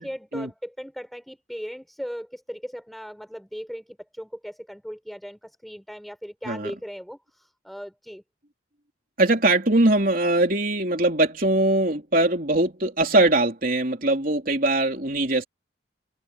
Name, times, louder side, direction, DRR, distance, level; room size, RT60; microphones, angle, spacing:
voice 1, 0.0-8.2, equal, ahead, 5.6 m, -38 dB
voice 2, 9.2-15.4, right 2 dB, 45° right, 3.6 m, -21 dB
head